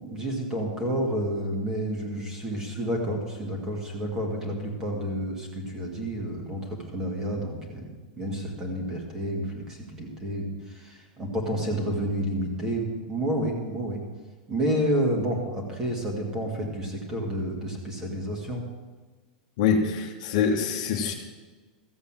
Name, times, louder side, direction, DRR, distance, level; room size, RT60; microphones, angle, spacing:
voice 1, 0.0-7.8 8.2-14.0 14.5-18.6, equal, 10° right, 1 dB, 2.0 m, -30 dB
voice 2, 19.6-21.1, left 6 dB, 40° left, 2 dB, 1.4 m, -24 dB
14.0 x 8.1 x 7.4 m, 1.3 s
supercardioid pair, 175°, 5 cm